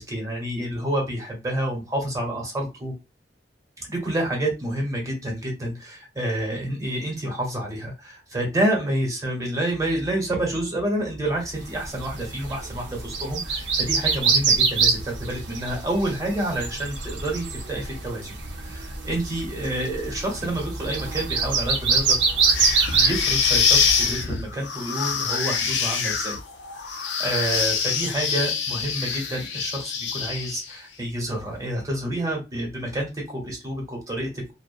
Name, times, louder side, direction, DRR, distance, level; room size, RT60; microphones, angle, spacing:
voice 1, 0.0-2.9 3.8-22.2 22.9-26.4 26.8-34.5, right 1 dB, 20° right, 0 dB, 1.0 m, -28 dB
sound 1, 11.7-24.2, right 4 dB, 75° right, 0.6 m, -25 dB
sound 2, 22.4-30.7, left 6 dB, 75° left, 0.5 m, -25 dB
2.4 x 2.1 x 2.5 m, 0.27 s
head